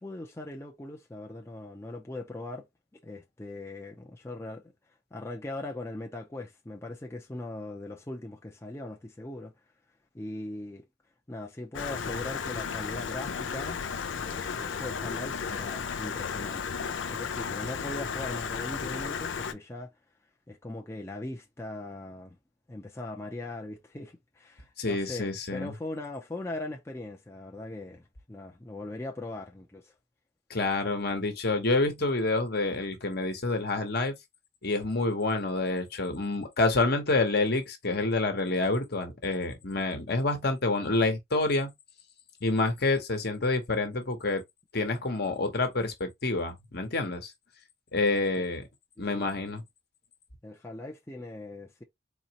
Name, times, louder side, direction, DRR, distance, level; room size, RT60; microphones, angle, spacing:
voice 1, 0.0-2.7 3.0-4.6 5.1-9.5 10.1-10.8 11.3-13.8 14.2-16.7 17.1-19.9 20.5-22.4 22.7-29.9 48.4-48.5 49.0-49.3 50.4-51.8, left 2 dB, 15° left, 0.5 m, -40 dB
Stream, 11.7-19.5, left 6 dB, 85° left, 0.5 m, -34 dB
voice 2, 24.8-25.7 30.5-34.1 34.6-41.7 42.4-44.4 44.7-47.3 47.9-48.6 49.0-49.6, left 2 dB, 60° left, 1.1 m, -28 dB
4.2 x 3.0 x 2.9 m
head